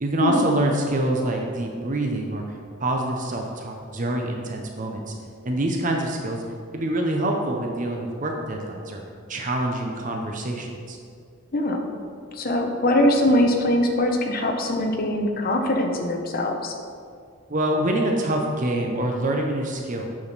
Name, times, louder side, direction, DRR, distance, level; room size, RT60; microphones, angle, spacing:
voice 1, 0.0-2.4 2.8-5.1 5.4-6.4 6.7-9.0 9.3-11.0 17.5-20.1, right 1 dB, 40° right, 1 dB, 0.8 m, -25 dB
voice 2, 11.5-11.9 12.3-16.7, left 1 dB, 45° left, 3 dB, 0.9 m, -22 dB
8.7 x 6.4 x 4.1 m, 2.2 s
head